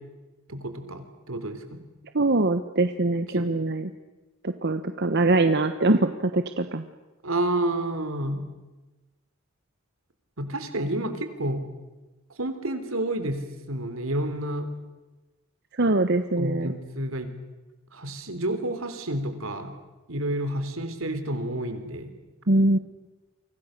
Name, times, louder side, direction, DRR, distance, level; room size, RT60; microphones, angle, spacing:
voice 1, 0.5-1.8 3.3-3.5 7.2-8.4 10.4-11.6 12.4-14.7 16.4-17.3 17.9-19.7 20.1-22.1, right 1 dB, 80° right, 9 dB, 3.6 m, -30 dB
voice 2, 2.1-3.9 4.4-6.8 15.7-16.7 22.5-22.8, right 2 dB, 55° right, 9 dB, 1.1 m, -23 dB
29.5 x 25.0 x 6.7 m, 1.1 s
head